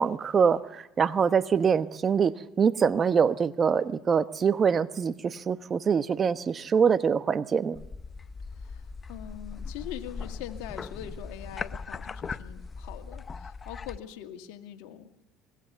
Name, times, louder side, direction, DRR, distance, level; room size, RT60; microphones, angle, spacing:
voice 1, 0.0-7.8, right 6 dB, 35° right, 13 dB, 1.0 m, -24 dB
sound 1, 7.7-14.0, left 4 dB, 30° left, 0.8 m, -39 dB
voice 2, 8.5-15.3, left 11 dB, 85° left, 5 dB, 2.1 m, -43 dB
24.5 x 20.5 x 6.9 m, 0.96 s
supercardioid pair, 95°, 0 cm